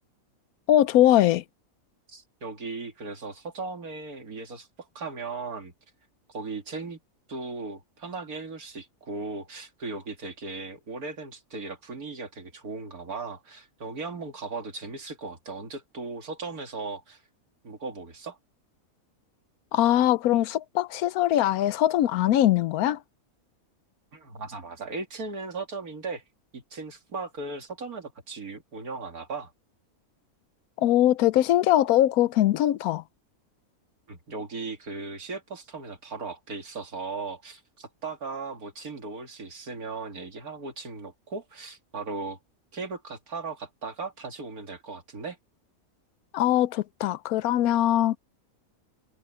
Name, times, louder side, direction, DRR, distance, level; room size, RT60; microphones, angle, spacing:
voice 1, 0.7-1.4 19.7-23.0 30.8-33.0 46.3-48.2, left 13 dB, 85° left, 1.1 m, -21 dB
voice 2, 2.1-5.7 6.3-7.0 7.3-17.2 17.6-18.4 24.1-26.2 26.5-29.5 34.1-42.4 42.7-45.4, right 4 dB, 90° right, 2.7 m, -37 dB
omnidirectional pair, 1.5 m